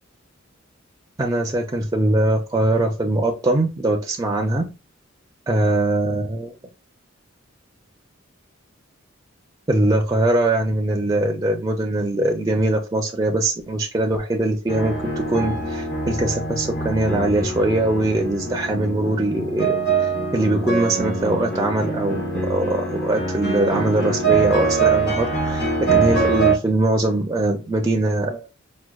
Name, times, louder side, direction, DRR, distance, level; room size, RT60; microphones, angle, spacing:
voice 1, 1.2-4.6 5.5-6.5 9.7-28.5, right 2 dB, 15° right, 2 dB, 0.4 m, -22 dB
sound 1, 14.7-26.6, right 4 dB, 55° left, 0.9 m, -23 dB
4.6 x 2.2 x 2.2 m, 0.29 s
head